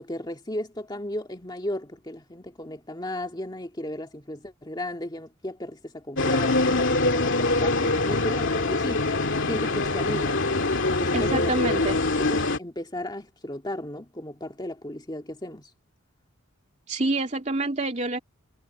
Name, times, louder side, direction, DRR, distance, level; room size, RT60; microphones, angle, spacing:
voice 1, 0.0-9.1 9.5-10.4 10.9-11.9 12.3-15.7, left 1 dB, 20° left, 1.8 m, -34 dB
sound 1, 6.2-12.6, left 2 dB, 60° left, 2.5 m, -24 dB
voice 2, 11.1-12.0 16.9-18.2, right 2 dB, 35° right, 2.8 m, -27 dB
head